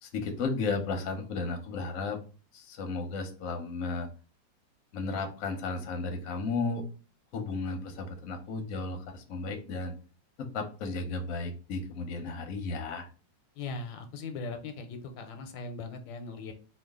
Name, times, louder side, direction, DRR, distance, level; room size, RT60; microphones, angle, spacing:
voice 1, 0.0-2.2 2.5-4.1 4.9-6.8 7.3-9.9 10.4-13.1, left 3 dB, 60° left, 4 dB, 0.9 m, -34 dB
voice 2, 13.5-16.5, left 3 dB, 85° left, 6 dB, 1.3 m, -39 dB
3.1 x 2.3 x 3.5 m, 0.35 s
omnidirectional pair, 2.0 m